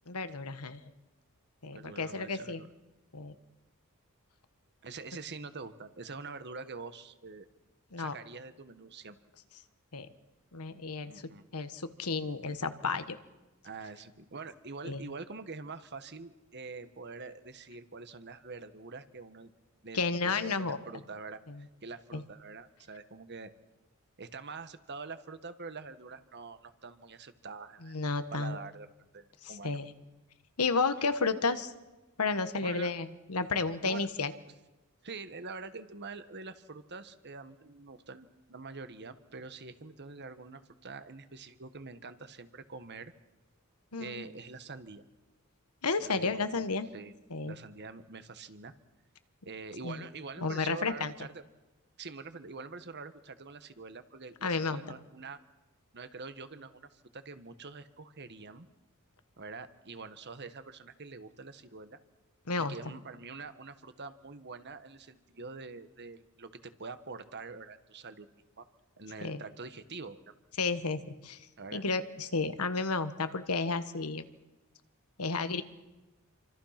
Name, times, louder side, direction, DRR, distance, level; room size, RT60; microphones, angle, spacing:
voice 1, 0.1-0.8 1.6-2.6 3.1-3.3 7.9-8.1 9.9-10.1 10.5-11.1 11.5-13.2 14.8-15.0 19.9-20.8 21.5-21.6 22.1-22.2 27.8-28.6 29.4-29.9 30.6-31.7 32.2-34.3 43.9-44.2 45.8-46.9 47.3-47.5 49.8-50.0 50.4-51.1 54.4-54.8 62.5-62.8 69.2-69.4 70.6-71.4 71.7-74.2 75.2-75.6, left 4 dB, 90° left, 10 dB, 1.5 m, -32 dB
voice 2, 1.7-2.7 4.8-7.5 8.0-9.2 11.0-11.4 13.6-19.5 19.8-23.5 24.2-28.0 28.3-28.9 29.1-29.8 32.6-32.9 33.8-34.1 35.0-43.1 44.0-45.0 46.0-46.7 46.9-47.2 47.4-48.7 49.4-51.4 52.0-55.4 55.9-58.7 59.4-62.0 62.6-68.3 68.6-68.7 69.0-70.3 71.6-71.8, right 4 dB, 50° right, 11 dB, 1.4 m, -45 dB
28.0 x 25.0 x 5.9 m, 1.1 s
head